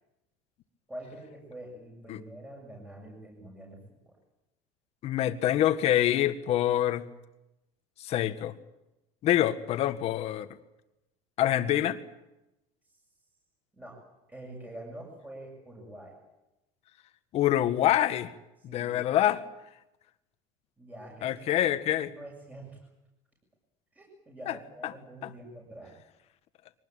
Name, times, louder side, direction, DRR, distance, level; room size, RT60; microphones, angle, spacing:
voice 1, 0.9-4.1 13.7-14.0 14.3-16.1 18.7-18.9 20.8-22.8 23.9-25.9, right 1 dB, 10° right, -2 dB, 7.4 m, -46 dB
voice 2, 5.0-7.0 8.0-8.5 9.2-10.5 11.4-12.0 17.3-18.3 18.6-19.4 21.2-22.1 24.5-24.6 25.2-25.3, left 12 dB, 50° left, 10 dB, 1.7 m, -26 dB
23.5 x 19.0 x 9.1 m, 0.95 s
supercardioid pair, 125°, 14 cm